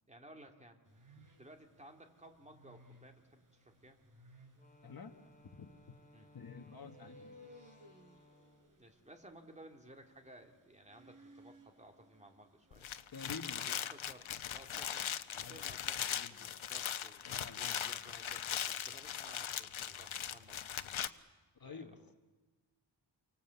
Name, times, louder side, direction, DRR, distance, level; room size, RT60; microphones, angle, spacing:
voice 1, 0.1-0.8 1.4-4.0 6.1-6.3 8.8-13.1 13.6-20.6 21.6-22.2, right 1 dB, 15° right, 4 dB, 2.5 m, -58 dB
sound 1, 0.8-13.2, right 1 dB, 40° right, 4.3 m, -62 dB
Wind instrument woodwind instrument, 4.5-8.9, left 2 dB, 15° left, 2.8 m, -64 dB
voice 2, 4.8-5.1 5.6-6.0 6.3-7.3 13.1-13.7 15.4-15.7 16.1-16.5 17.2-17.9 21.6-22.0, left 5 dB, 45° left, 6 dB, 1.5 m, -49 dB
sound 2, 12.7-21.1, left 9 dB, 80° left, 1.0 m, -39 dB
29.0 x 24.5 x 8.3 m, 1.3 s
wide cardioid pair, 160°, 48 cm